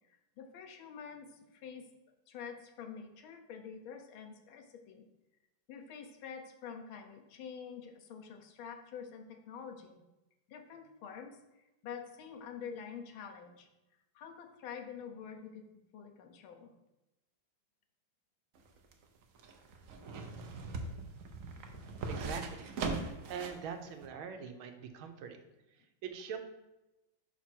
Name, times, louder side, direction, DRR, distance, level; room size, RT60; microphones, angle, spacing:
voice 1, 0.1-1.9 2.3-5.1 5.7-10.0 10.5-13.7 14.1-15.7 15.9-16.7, left 7 dB, 80° left, 5 dB, 1.6 m, -47 dB
sound 1, 18.6-23.7 24.0-24.1, right 3 dB, 60° right, 0.9 m, -40 dB
voice 2, 22.1-22.8 23.3-26.4, right 7 dB, 85° right, 6 dB, 1.6 m, -43 dB
5.9 x 5.1 x 4.4 m, 0.99 s
omnidirectional pair, 2.2 m